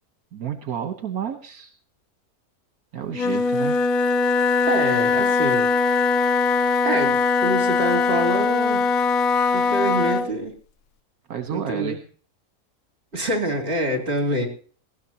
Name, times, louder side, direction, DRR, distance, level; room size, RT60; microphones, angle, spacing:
voice 1, 0.3-1.7 2.9-3.8 11.3-12.0, right 8 dB, 75° right, 6 dB, 1.5 m, -30 dB
Wind instrument woodwind instrument, 3.1-10.3, left 4 dB, 70° left, 1.2 m, -21 dB
voice 2, 4.6-5.7 6.8-8.9 9.5-10.5 11.5-12.0 13.1-14.5, right 1 dB, 45° right, 2 dB, 3.4 m, -26 dB
19.5 x 16.5 x 2.8 m, 0.43 s
omnidirectional pair, 1.5 m